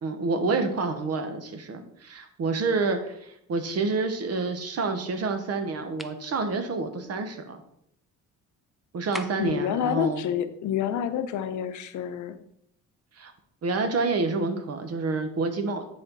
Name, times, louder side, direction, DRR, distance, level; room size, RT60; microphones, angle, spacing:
voice 1, 0.0-7.6 8.9-10.2 13.2-13.3 13.6-15.9, right 3 dB, 55° right, 8 dB, 1.2 m, -28 dB
sound 1, 6.0-6.2 9.1-9.6, equal, ahead, 0.6 m, -39 dB
voice 2, 9.4-12.4, left 9 dB, 75° left, 10 dB, 0.7 m, -28 dB
9.7 x 4.3 x 4.1 m, 0.74 s
cardioid pair, 90°, 30 cm